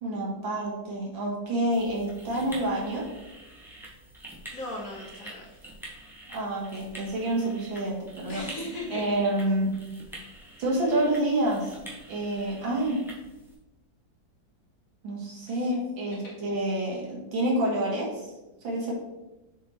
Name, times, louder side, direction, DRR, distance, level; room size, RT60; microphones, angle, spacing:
voice 1, 0.0-3.1 6.3-8.4 8.9-9.7 10.6-11.8 12.1-13.0 15.0-18.2 18.6-18.9, right 1 dB, 80° right, -3 dB, 2.2 m, -28 dB
sound 1, 1.7-13.5, right 1 dB, ahead, 0.9 m, -46 dB
voice 2, 4.5-5.6 8.3-9.2 10.1-10.3 15.5-15.7 16.1-16.3, left 1 dB, 50° left, -3 dB, 1.6 m, -38 dB
7.3 x 4.2 x 3.1 m, 1.0 s
omnidirectional pair, 2.1 m